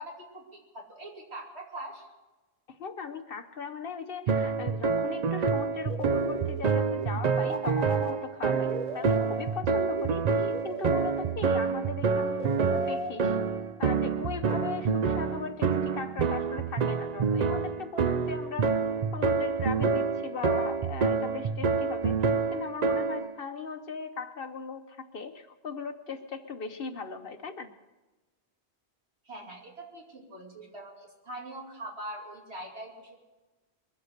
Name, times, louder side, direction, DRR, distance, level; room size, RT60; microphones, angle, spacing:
voice 1, 0.0-2.1 29.2-33.2, right 1 dB, 75° right, -2 dB, 3.1 m, -42 dB
voice 2, 2.7-8.7 8.9-13.4 13.8-18.8 19.1-22.2 22.5-27.7, left 5 dB, 60° left, 8 dB, 1.0 m, -38 dB
sound 1, 4.3-23.3, right 5 dB, 50° right, 0.6 m, -27 dB
sound 2, 5.9-11.7 12.4-13.8 14.5-15.9, right 1 dB, 35° right, 1.5 m, -39 dB
22.5 x 7.9 x 6.6 m, 1.1 s
omnidirectional pair, 1.1 m